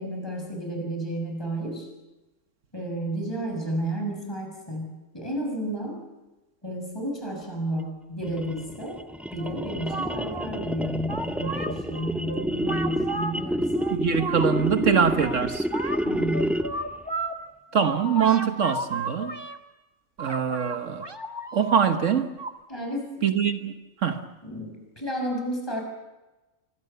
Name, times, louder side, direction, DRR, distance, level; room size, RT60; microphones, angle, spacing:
voice 1, 0.0-1.9 2.7-6.0 6.6-9.0 9.3-13.9 16.0-16.6 22.7-23.3 24.4-25.8, right 1 dB, 20° left, 6.6 m, -32 dB
sound 1, 8.2-16.9, equal, ahead, 0.6 m, -29 dB
sound 2, 9.4-10.5 11.1-13.3 13.7-17.4 17.7-19.6 20.2-21.7 22.4-22.5, right 2 dB, 20° right, 1.4 m, -34 dB
voice 2, 13.9-15.7 17.7-19.4 20.2-21.1 21.5-22.3 23.2-23.7 24.0-24.3, right 7 dB, 70° right, 1.5 m, -23 dB
26.5 x 24.5 x 6.9 m
omnidirectional pair, 1.4 m